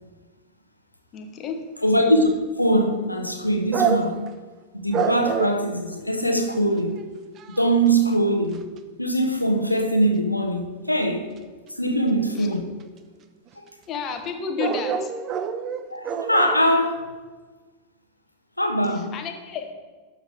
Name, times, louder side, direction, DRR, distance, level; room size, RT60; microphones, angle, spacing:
voice 1, 1.1-1.6 12.3-12.5 13.9-15.1 19.1-19.7, left 6 dB, 30° left, 1.1 m, -31 dB
voice 2, 1.8-4.3 4.7-7.0 7.5-8.7 9.0-11.3 11.7-12.6 13.6-13.7 15.9-17.0 18.6-19.1, right 1 dB, 85° left, 0.9 m, -22 dB
sound 1, 2.2-2.3 3.7-4.3 4.9-5.6 6.5-6.6 7.0-7.1 7.4-7.9 8.5-8.8 12.4-12.5 12.8-12.9 14.3-14.4 14.6-16.6, right 6 dB, 30° right, 0.6 m, -26 dB
12.5 x 5.2 x 3.4 m
figure-of-eight pair, 90°, 0 cm